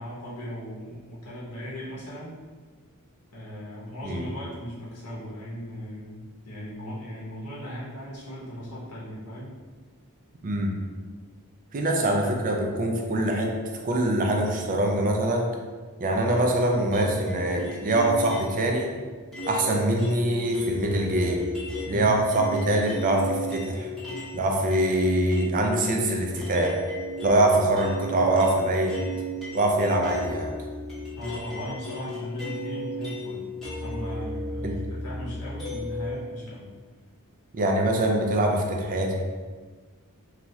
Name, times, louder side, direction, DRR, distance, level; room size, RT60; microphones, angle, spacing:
voice 1, 0.0-2.3 3.3-9.6 21.9-22.2 31.2-33.5 33.8-36.7, equal, 90° left, -6 dB, 0.8 m, -37 dB
voice 2, 10.4-10.8 11.7-13.6 13.8-15.5 16.0-18.9 19.5-21.5 21.9-23.9 24.3-26.8 27.2-29.0 29.5-30.5 34.6-34.7 37.5-39.1, right 1 dB, 40° right, 1 dB, 0.4 m, -24 dB
sound 1, 16.9-18.7 19.3-24.4 24.7-36.1, equal, ahead, 0.8 m, -35 dB
2.7 x 2.4 x 3.0 m, 1.5 s
head